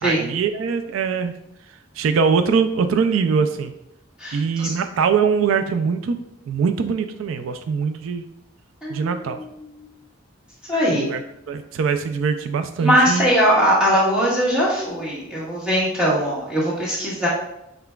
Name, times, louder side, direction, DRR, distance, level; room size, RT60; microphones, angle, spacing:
voice 1, 0.0-1.3 2.0-3.7 4.3-8.3 8.9-9.4 10.9-11.2 11.5-13.3, right 5 dB, 90° right, 9 dB, 0.3 m, -22 dB
voice 2, 4.2-4.7 8.8-9.8 10.7-11.1 12.8-17.3, equal, 5° right, -7 dB, 1.4 m, -21 dB
5.7 x 3.4 x 2.3 m, 0.83 s
head